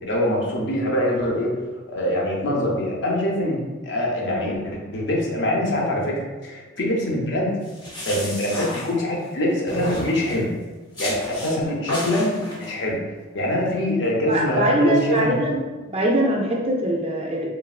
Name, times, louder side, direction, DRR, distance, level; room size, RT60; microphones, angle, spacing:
voice 1, 0.0-1.5 1.9-7.6 8.1-10.5 11.0-13.0 13.3-15.4, left 1 dB, 60° left, -2 dB, 0.6 m, -24 dB
sound 1, 7.6-9.3 9.7-10.5 11.0-11.6 11.9-12.7, left 1 dB, 20° left, 0.5 m, -32 dB
voice 2, 14.3-15.6 15.9-17.5, right 1 dB, 30° right, -1 dB, 0.3 m, -22 dB
3.1 x 2.1 x 2.3 m, 1.3 s
head